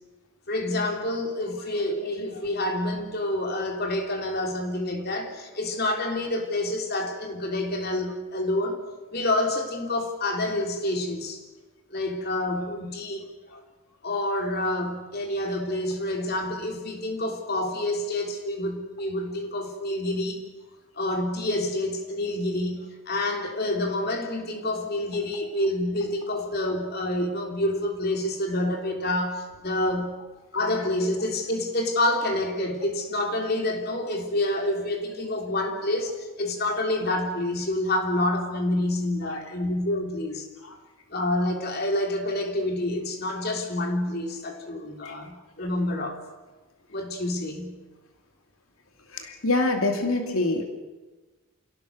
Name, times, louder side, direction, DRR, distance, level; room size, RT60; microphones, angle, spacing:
voice 1, 0.5-8.8 9.1-11.4 11.9-13.3 14.0-20.4 20.9-30.1 30.5-40.5 41.1-46.2 46.9-47.8, left 1 dB, 50° left, 4 dB, 3.3 m, -28 dB
voice 2, 49.1-50.6, left 2 dB, 90° left, 4 dB, 2.6 m, -25 dB
28.5 x 17.5 x 6.6 m, 1.2 s
head